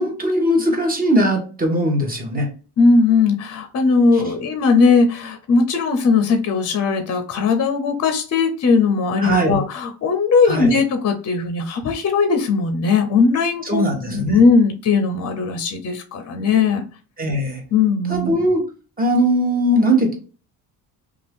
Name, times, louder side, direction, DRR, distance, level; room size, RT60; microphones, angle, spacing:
voice 1, 0.0-2.5 9.2-9.6 10.5-10.8 13.7-14.4 17.2-17.6 18.1-18.6 19.0-20.1, equal, 25° right, 2 dB, 1.0 m, -19 dB
voice 2, 2.8-16.8 17.7-18.3, left 4 dB, 45° left, 5 dB, 0.6 m, -18 dB
2.6 x 2.3 x 3.4 m, 0.37 s
cardioid pair, 110°, 36 cm